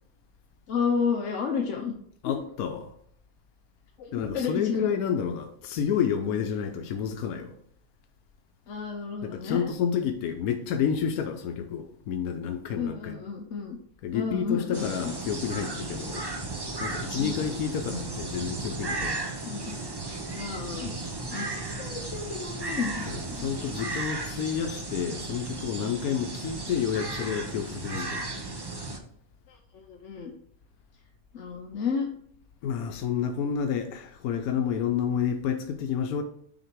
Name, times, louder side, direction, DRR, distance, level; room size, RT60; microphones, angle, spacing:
voice 1, 0.7-2.0 2.2-2.3 4.0-4.8 8.7-9.7 12.8-13.8 14.1-14.9 17.2-17.5 19.5-19.8 20.3-20.9 21.3-23.5 29.5-30.3 31.3-32.1, left 6 dB, 60° left, 1.1 m, -31 dB
voice 2, 2.2-2.9 4.1-7.6 9.2-13.2 14.0-16.2 16.8-19.3 23.1-28.3 32.6-36.2, left 7 dB, 90° left, 1.1 m, -30 dB
sound 1, 14.7-29.0, right 2 dB, 25° right, 0.5 m, -35 dB
6.6 x 4.3 x 4.5 m
omnidirectional pair, 1.5 m